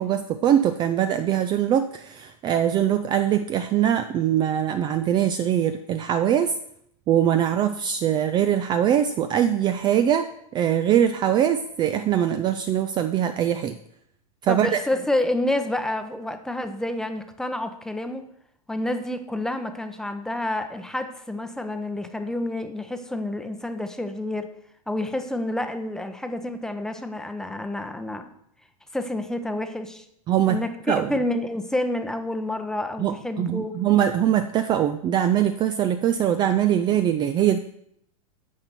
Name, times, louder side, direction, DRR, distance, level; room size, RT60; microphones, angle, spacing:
voice 1, 0.0-6.5 7.1-13.8 14.4-14.8 30.3-30.6 30.9-31.1 33.0-37.6, right 10 dB, 25° right, 9 dB, 0.4 m, -22 dB
voice 2, 14.5-18.3 18.7-24.5 24.9-28.3 28.9-30.0 30.5-33.7, left 1 dB, 5° left, 8 dB, 0.8 m, -29 dB
9.7 x 5.8 x 6.8 m, 0.73 s
supercardioid pair, 140°, 19 cm